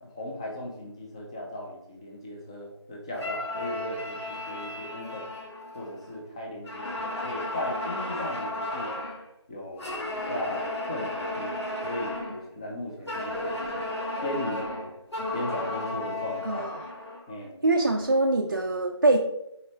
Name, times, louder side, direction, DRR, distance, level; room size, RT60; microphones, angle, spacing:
voice 1, 0.0-5.3 5.7-8.9 9.5-9.9 10.3-13.8 14.2-14.9 15.3-16.6 17.3-17.6, left 1 dB, 10° left, -1 dB, 0.7 m, -37 dB
sound 1, 3.1-6.2 6.6-9.2 9.8-12.4 13.1-17.3, left 1 dB, 70° left, 2.4 m, -34 dB
voice 2, 16.4-16.7 17.6-19.2, right 2 dB, 40° right, 0 dB, 0.5 m, -23 dB
7.9 x 4.2 x 3.2 m, 0.83 s
figure-of-eight pair, 165°, 15 cm